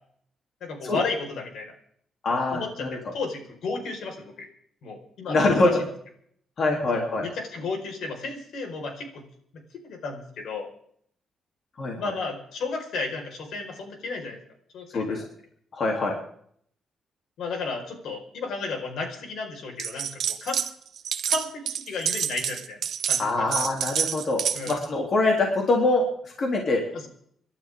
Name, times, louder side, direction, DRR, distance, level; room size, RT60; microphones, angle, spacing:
voice 1, 0.6-1.7 2.3-4.5 4.8-5.7 6.9-9.2 9.5-10.7 12.0-14.4 14.7-15.3 17.4-20.1 20.4-20.6 21.3-22.8 23.1-23.4 24.5-24.8 26.9-27.1, left 3 dB, 75° left, 3 dB, 5.0 m, -33 dB
voice 2, 2.2-3.0 5.3-5.8 6.6-7.3 11.8-12.1 14.9-15.2 15.7-16.2 23.2-26.8, left 2 dB, 40° left, 0 dB, 3.2 m, -24 dB
sound 1, 19.8-20.7 21.0-24.8, right 8 dB, 60° right, 1.0 m, -28 dB
28.5 x 12.0 x 3.7 m, 0.64 s
wide cardioid pair, 165°, 0 cm